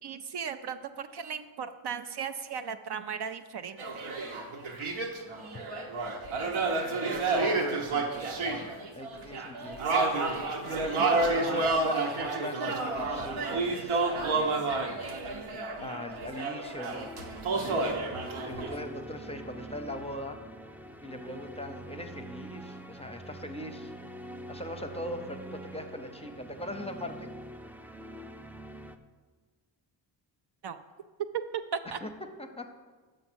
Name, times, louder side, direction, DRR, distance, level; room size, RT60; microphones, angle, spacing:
voice 1, 0.0-4.0 30.6-30.8 31.7-32.0, right 6 dB, 55° right, 9 dB, 0.5 m, -37 dB
sound 1, 3.8-18.8, right 3 dB, 80° right, 1.1 m, -30 dB
voice 2, 7.9-8.4 9.0-10.1 10.6-14.0 14.3-14.9 15.8-17.1 17.6-20.4 21.0-23.9 24.5-27.3 31.8-32.1 32.4-32.8, left 1 dB, 15° left, 6 dB, 0.7 m, -40 dB
sound 2, 16.9-29.0, right 1 dB, 5° right, 0.3 m, -45 dB
6.5 x 5.8 x 6.1 m, 1.4 s
cardioid pair, 70°, 49 cm